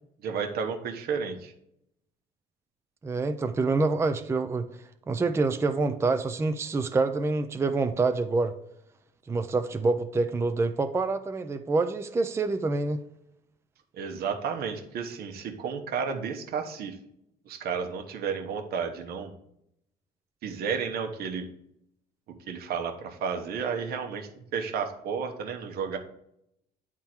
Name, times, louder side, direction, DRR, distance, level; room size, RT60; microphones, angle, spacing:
voice 1, 0.2-1.5 13.9-17.0 17.4-19.3 20.4-21.4 22.5-26.0, right 6 dB, 65° right, 5 dB, 1.1 m, -32 dB
voice 2, 3.0-4.7 5.1-8.5 9.3-13.0, right 3 dB, 15° right, 9 dB, 0.4 m, -26 dB
9.2 x 3.7 x 4.3 m, 0.78 s
cardioid pair, 110°, 17 cm